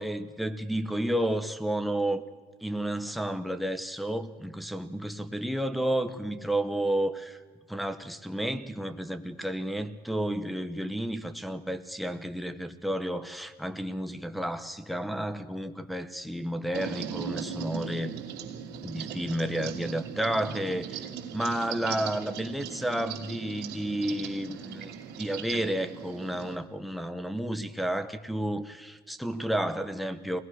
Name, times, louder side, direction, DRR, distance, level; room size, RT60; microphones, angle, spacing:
voice 1, 0.0-2.2 2.6-7.4 7.7-18.1 18.8-21.0 21.3-30.4, right 1 dB, ahead, 0.9 m, -31 dB
sound 1, 16.7-26.6, right 8 dB, 70° right, 2.8 m, -39 dB
28.0 x 19.0 x 6.3 m
cardioid pair, 175°, 18 cm